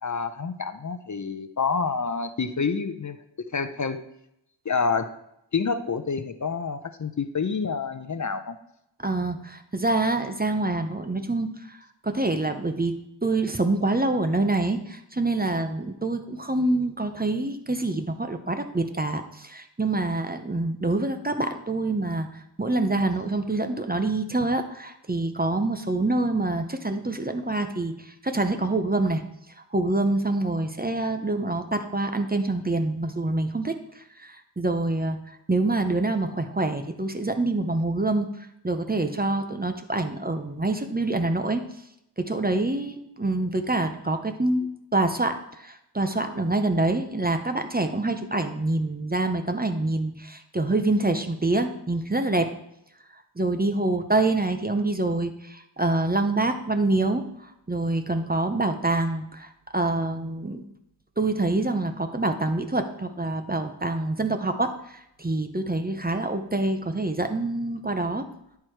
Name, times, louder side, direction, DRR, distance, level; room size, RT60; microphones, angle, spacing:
voice 1, 0.0-4.0 4.6-5.1 5.5-8.6, left 5 dB, 45° left, 10 dB, 0.6 m, -28 dB
voice 2, 9.0-11.8 12.0-12.9 13.2-22.3 22.6-29.2 29.7-41.6 42.2-52.5 53.4-60.6 61.2-68.3, right 2 dB, 20° right, 6 dB, 0.7 m, -26 dB
10.5 x 4.7 x 4.6 m, 0.80 s
wide cardioid pair, 55°, 42 cm